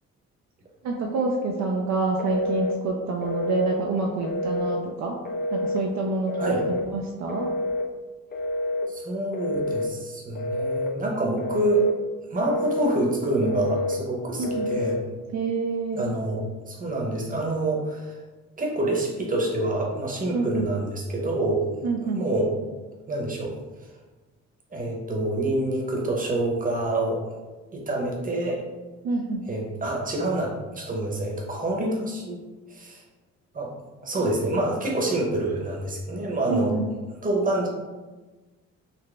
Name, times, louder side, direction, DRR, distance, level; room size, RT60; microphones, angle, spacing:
voice 1, 0.8-5.2 5.5-7.5 14.4-14.7 15.3-16.0 20.3-20.7 21.8-22.3 29.0-29.5 36.5-36.9, right 3 dB, 65° right, 0 dB, 0.5 m, -27 dB
Telephone, 2.2-2.8 3.2-3.8 4.2-4.8 5.3-5.8 6.3-6.8 7.3-7.9 8.3-8.9 9.3-9.9 10.4-10.9 11.4-11.9 12.4-13.0 13.4-14.0 14.4-15.0, left 1 dB, 30° left, 0.5 m, -28 dB
voice 2, 8.9-11.9 12.3-15.0 15.9-18.1 18.6-21.6 22.1-22.6 23.1-23.5 24.7-27.2 27.7-28.6 29.5-32.4 32.7-33.0 33.5-33.7 34.0-36.7 37.2-37.7, right 2 dB, 25° right, -1 dB, 0.9 m, -27 dB
4.0 x 2.1 x 3.3 m, 1.2 s
cardioid pair, 90°, 30 cm